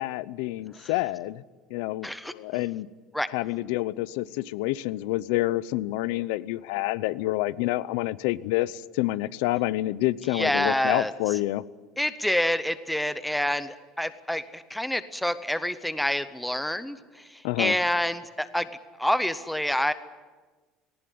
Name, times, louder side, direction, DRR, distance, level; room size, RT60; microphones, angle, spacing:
voice 1, 0.0-1.4 1.7-2.9 3.3-11.6 17.4-17.8, left 17 dB, 85° left, 17 dB, 0.7 m, -28 dB
voice 2, 2.0-2.3 3.1-3.3 10.3-11.1 12.0-17.0 17.6-18.7 19.0-19.9, left 1 dB, ahead, 12 dB, 0.7 m, -27 dB
18.5 x 18.5 x 9.6 m, 1.3 s
cardioid pair, 180°, 0 cm